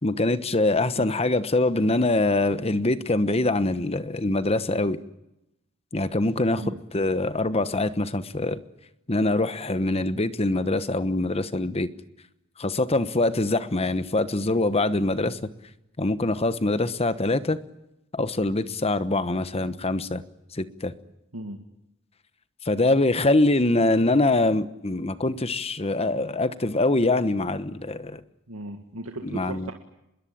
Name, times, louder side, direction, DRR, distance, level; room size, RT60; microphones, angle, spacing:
voice 1, 0.0-5.0 5.9-6.6 6.9-8.6 9.1-11.9 12.6-15.4 16.0-17.6 18.1-20.2 20.5-20.9 22.6-28.2 29.2-29.7, left 2 dB, 30° left, 13 dB, 1.1 m, -24 dB
voice 2, 21.3-21.6 28.5-29.7, right 1 dB, 80° right, 3 dB, 2.1 m, -36 dB
26.5 x 21.5 x 8.8 m, 0.88 s
head